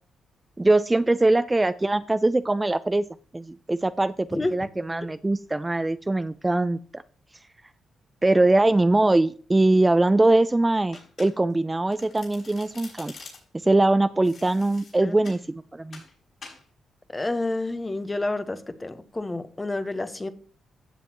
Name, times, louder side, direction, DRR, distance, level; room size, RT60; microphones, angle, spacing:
voice 1, 0.6-3.0 3.3-7.0 8.2-13.1 13.6-16.0, right 2 dB, 20° right, 13 dB, 0.5 m, -22 dB
Domestic sounds home sounds, 10.9-11.6 11.9-13.6 14.2-15.4 15.9-16.1 16.4-16.6, left 4 dB, 60° left, 5.4 m, -46 dB
voice 2, 17.1-20.3, left 2 dB, 25° left, 10 dB, 1.2 m, -29 dB
15.0 x 7.0 x 3.0 m, 0.42 s
supercardioid pair, 45°, 0 cm